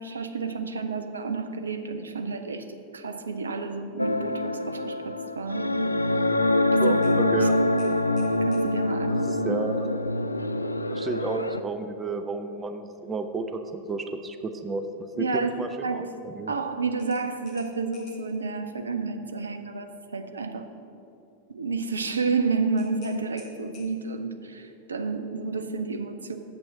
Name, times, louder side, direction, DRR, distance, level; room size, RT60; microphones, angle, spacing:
voice 1, 0.0-5.8 6.6-7.3 8.4-9.3 15.1-16.1 16.5-20.7 21.5-26.4, right 4 dB, 75° right, 8 dB, 0.6 m, -30 dB
sound 1, 4.0-11.6, left 1 dB, 85° left, 0.3 m, -25 dB
voice 2, 6.8-7.6 9.3-9.9 10.9-14.8 15.2-16.5, right 3 dB, 20° right, 7 dB, 0.6 m, -32 dB
sound 2, 7.0-8.7 11.3-11.5 12.0-12.1 17.0-18.4 22.8-24.2, left 4 dB, 35° left, 2.1 m, -53 dB
7.7 x 6.1 x 6.9 m, 2.7 s
figure-of-eight pair, 90°, 0 cm